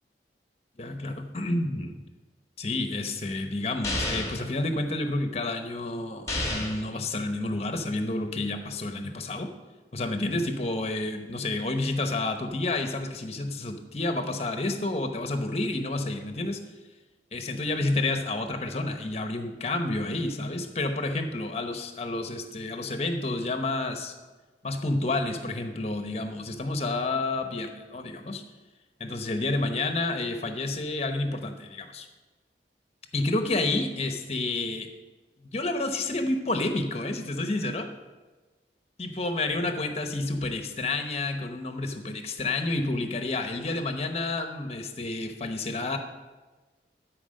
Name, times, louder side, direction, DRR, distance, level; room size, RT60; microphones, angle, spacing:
voice 1, 0.8-2.0 2.6-9.5 9.9-16.6 17.3-24.1 24.6-28.4 29.0-32.1 33.1-34.9 35.4-37.9 39.0-46.0, left 2 dB, 35° left, 7 dB, 0.9 m, -30 dB
sound 1, 3.8-4.5 6.3-6.9, left 1 dB, 15° left, 1.5 m, -30 dB
12.5 x 4.8 x 6.4 m, 1.3 s
head